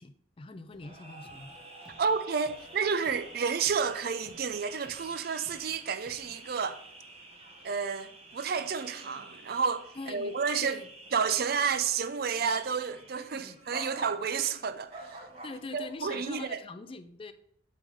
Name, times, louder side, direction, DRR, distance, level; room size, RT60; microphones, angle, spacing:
voice 1, 0.0-1.5 10.0-10.9 13.3-13.6 15.4-17.3, left 3 dB, 30° left, 0.4 m, -43 dB
sound 1, 0.7-6.2, equal, ahead, 1.0 m, -59 dB
sound 2, 0.8-16.5, right 1 dB, 30° right, 1.1 m, -49 dB
voice 2, 2.0-6.8 7.6-10.8 11.1-15.2 15.7-16.6, right 6 dB, 50° right, 0.4 m, -30 dB
8.3 x 3.7 x 4.9 m
head